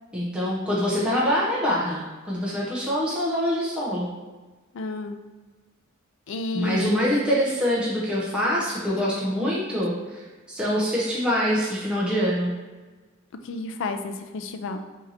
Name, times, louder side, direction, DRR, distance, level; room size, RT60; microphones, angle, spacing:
voice 1, 0.1-4.1 6.5-12.5, equal, 5° right, -7 dB, 0.7 m, -25 dB
voice 2, 4.7-5.2 6.3-7.1 13.4-14.8, left 3 dB, 60° left, 7 dB, 0.4 m, -31 dB
4.3 x 2.8 x 3.9 m, 1.3 s
head